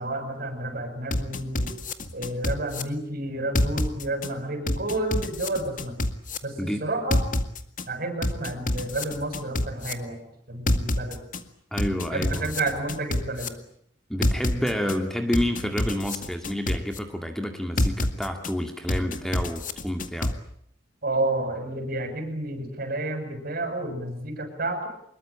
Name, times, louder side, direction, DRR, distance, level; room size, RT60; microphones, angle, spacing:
voice 1, 0.0-1.7 2.1-6.0 6.4-7.2 7.9-10.2 10.5-11.2 12.1-13.5 21.0-24.9, right 2 dB, 50° right, 7 dB, 7.5 m, -30 dB
sound 1, 1.1-2.8 3.6-4.3 4.7-6.4 7.1-7.8 8.2-9.9 10.7-11.4 11.8-13.5 14.2-15.0 15.3-17.0 17.8-18.5 18.9-20.3, left 1 dB, 45° left, 1.9 m, -26 dB
voice 2, 11.7-12.5 14.1-20.4, equal, 5° left, 5 dB, 2.0 m, -29 dB
25.0 x 21.5 x 8.8 m, 0.70 s
head